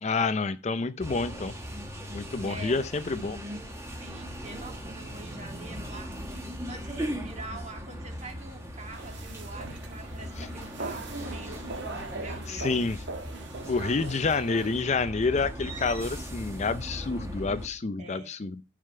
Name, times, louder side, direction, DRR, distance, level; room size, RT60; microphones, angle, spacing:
voice 1, 0.0-1.5 2.1-3.4 10.4-10.5 12.5-13.0 13.7-18.6, left 4 dB, 35° left, 0.5 m, -28 dB
sound 1, 1.0-17.7, equal, 15° right, 1.6 m, -39 dB
voice 2, 2.5-2.8 4.0-12.8 13.3-13.5 18.0-18.3, right 3 dB, 35° right, 2.1 m, -45 dB
sound 2, 8.9-14.8, right 3 dB, 60° right, 1.4 m, -41 dB
11.0 x 4.9 x 5.5 m
head